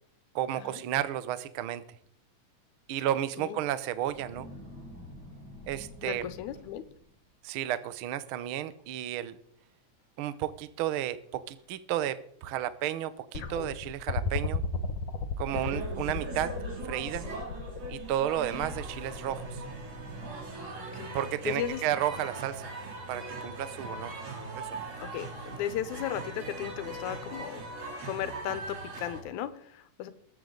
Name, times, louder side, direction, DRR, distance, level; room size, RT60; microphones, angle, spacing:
voice 1, 0.3-1.8 2.9-4.5 5.7-6.3 7.4-9.4 10.2-14.6 15.4-16.5 16.8-17.3 17.9-19.6 21.1-22.7 23.1-24.1 24.6-24.8, right 12 dB, 85° right, 14 dB, 1.1 m, -32 dB
sound 1, 3.9-7.2 7.9-8.1 8.4-8.9 9.1-9.2 10.0-10.1 10.6-10.7 11.2-11.7 12.5-12.6 15.4-16.4 18.5-19.5 20.0-20.8, equal, 30° right, 6.2 m, -49 dB
voice 2, 6.0-6.9 15.5-15.7 20.9-21.1 21.5-21.8 25.0-27.6 28.1-30.1, left 11 dB, 85° left, 12 dB, 2.3 m, -36 dB
sound 2, 13.3-20.5 21.6-21.7, left 5 dB, 60° left, 2.0 m, -35 dB
sound 3, 15.5-29.2, right 2 dB, 55° right, 3.8 m, -40 dB
21.0 x 8.6 x 3.9 m, 0.67 s
omnidirectional pair, 3.4 m